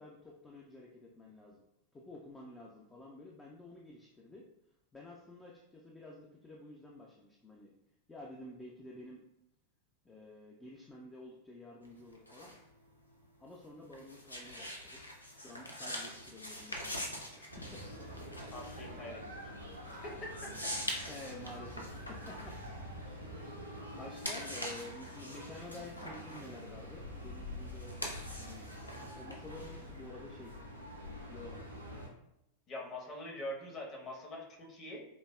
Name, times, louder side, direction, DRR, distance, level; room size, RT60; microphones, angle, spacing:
voice 1, 0.0-1.6 1.9-4.5 4.9-7.8 8.1-9.2 10.0-12.5 13.4-15.0 15.4-17.9 21.1-22.7 23.0-30.5 31.3-31.6, left 2 dB, 15° left, -2 dB, 0.4 m, -51 dB
sound 1, 11.8-23.6 24.0-30.1, left 1 dB, 85° left, 0.5 m, -44 dB
sound 2, 17.5-32.1, equal, 85° right, 0.6 m, -46 dB
voice 2, 18.5-19.2 19.9-20.5 32.7-35.1, left 1 dB, 30° left, -1 dB, 0.9 m, -44 dB
4.9 x 2.0 x 2.3 m, 0.82 s
figure-of-eight pair, 90°, 0 cm